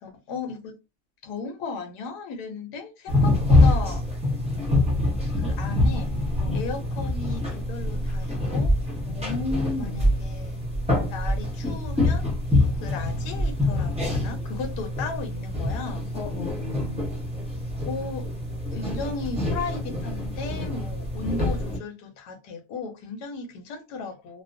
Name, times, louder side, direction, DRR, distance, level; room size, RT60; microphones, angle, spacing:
voice 1, 0.0-0.8 1.2-4.0 5.3-6.1 6.5-8.7 9.7-10.6 11.1-12.3 12.8-16.1 17.8-18.3 18.7-24.4, left 4 dB, 90° left, 1.2 m, -35 dB
sound 1, 3.1-21.8, left 1 dB, 10° right, 0.4 m, -25 dB
voice 2, 9.1-10.1 16.1-17.0, left 3 dB, 65° left, 0.7 m, -33 dB
2.8 x 2.0 x 2.5 m
omnidirectional pair, 1.7 m